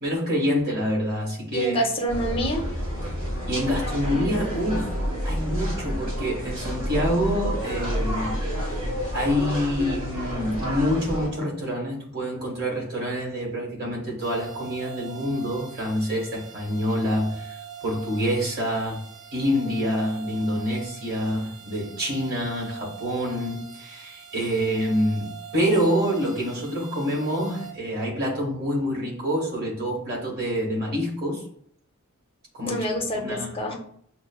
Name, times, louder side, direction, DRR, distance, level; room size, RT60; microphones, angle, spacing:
voice 1, 0.0-1.8 3.5-4.9 5.2-8.3 8.6-8.8 9.1-17.6 17.8-31.4 32.5-32.9 33.2-33.5, equal, 45° right, -2 dB, 1.4 m, -26 dB
voice 2, 1.5-2.6 32.6-33.7, equal, 25° left, 1 dB, 0.7 m, -26 dB
sound 1, 2.1-11.3, equal, 20° right, 1.5 m, -29 dB
sound 2, 14.2-27.7, right 8 dB, 70° right, 1.1 m, -42 dB
6.1 x 2.1 x 2.3 m, 0.63 s
head